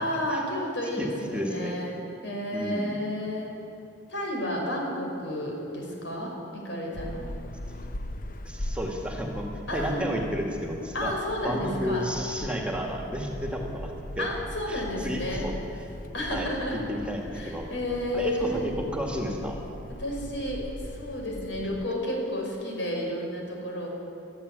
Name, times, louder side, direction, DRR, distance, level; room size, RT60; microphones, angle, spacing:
voice 1, 0.0-1.9 2.2-3.5 4.1-7.2 9.7-10.1 10.9-12.0 14.2-15.5 16.1-16.8 17.3-18.7 20.0-20.6 20.9-23.9, equal, 75° left, -1 dB, 5.9 m, -31 dB
voice 2, 1.0-1.8 2.5-3.0 8.4-11.1 11.4-13.9 14.2-14.3 14.7-15.5 16.3-17.7 18.1-19.6, equal, 5° right, 1 dB, 2.2 m, -32 dB
sound 1, 6.9-21.9, left 1 dB, 45° left, 0.8 m, -40 dB
20.0 x 14.0 x 9.9 m, 3.0 s
head